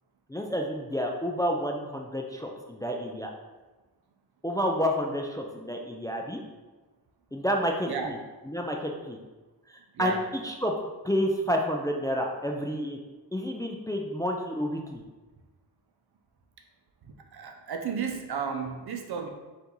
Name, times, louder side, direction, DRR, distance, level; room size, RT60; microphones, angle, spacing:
voice 1, 0.3-3.3 4.4-6.4 7.3-8.2 8.4-9.2 9.7-10.7 11.0-13.0 13.3-15.0, equal, 10° left, 1 dB, 0.3 m, -29 dB
voice 2, 17.3-19.3, right 6 dB, 70° right, 3 dB, 0.7 m, -33 dB
4.3 x 2.6 x 3.9 m, 1.2 s
wide cardioid pair, 85°, 40 cm